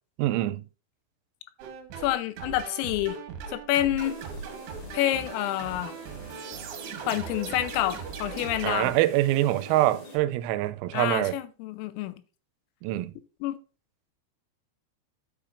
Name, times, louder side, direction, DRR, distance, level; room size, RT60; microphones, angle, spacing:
voice 1, 0.2-0.6 8.6-11.4 12.8-13.1, right 15 dB, 90° right, 3.3 m, -25 dB
sound 1, 1.6-8.9, right 7 dB, 70° right, 2.8 m, -39 dB
voice 2, 2.0-3.2 3.5-4.2 4.9-5.9 7.1-8.9 10.9-12.1 13.4-13.6, left 14 dB, 85° left, 3.4 m, -28 dB
sound 2, 4.0-10.2, left 2 dB, 35° left, 2.8 m, -45 dB
11.0 x 6.7 x 2.5 m
omnidirectional pair, 6.0 m